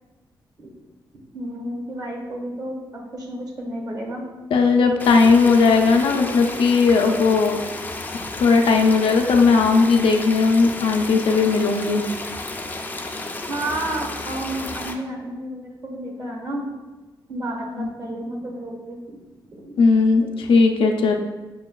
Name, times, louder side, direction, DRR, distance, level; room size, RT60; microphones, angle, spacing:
voice 1, 1.3-4.2 13.5-16.7 17.3-19.2 19.5-19.8 20.2-20.3, right 1 dB, 45° right, 0 dB, 1.0 m, -31 dB
voice 2, 4.5-7.6 8.4-12.0 17.8-17.9 19.8-21.1, left 4 dB, 85° left, 4 dB, 0.4 m, -17 dB
sound 1, 5.0-14.9, left 2 dB, 20° left, 0.4 m, -32 dB
6.2 x 2.3 x 2.2 m, 1.2 s
cardioid pair, 90°, 9 cm